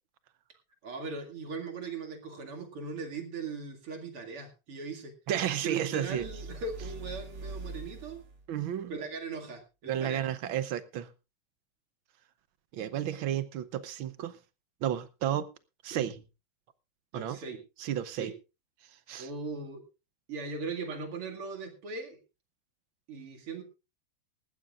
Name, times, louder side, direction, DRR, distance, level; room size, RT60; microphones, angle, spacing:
voice 1, 0.8-5.1 5.6-8.2 8.9-10.2 15.9-16.1 17.1-17.6 18.2-18.3 19.2-19.8 20.3-22.2 23.1-23.6, right 4 dB, 90° right, 3 dB, 3.1 m, -39 dB
voice 2, 5.3-6.2 8.5-8.9 9.9-11.1 12.7-14.4 14.8-15.5 15.8-16.1 17.1-17.4 17.8-18.3 19.1-19.3, right 10 dB, 70° right, 14 dB, 1.6 m, -32 dB
sound 1, 6.1-8.5, right 2 dB, 35° right, 2.0 m, -42 dB
19.5 x 14.5 x 2.4 m, 0.28 s
omnidirectional pair, 2.4 m